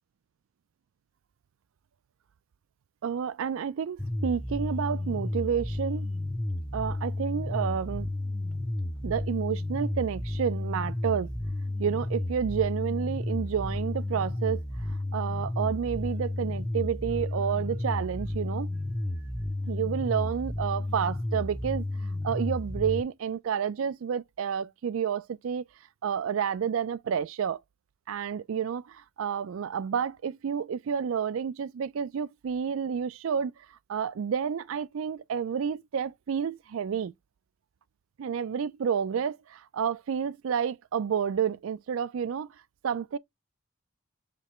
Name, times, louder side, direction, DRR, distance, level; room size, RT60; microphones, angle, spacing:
voice 1, 3.0-6.1 6.7-8.1 9.0-11.3 11.8-14.6 15.1-18.7 19.7-21.8 22.2-25.6 26.0-27.6 28.1-33.5 33.9-37.1 38.2-42.5 42.8-43.2, right 7 dB, 65° right, 0.3 m, -30 dB
sound 1, 4.0-23.0, left 1 dB, 5° left, 0.5 m, -32 dB
5.1 x 3.2 x 2.9 m
head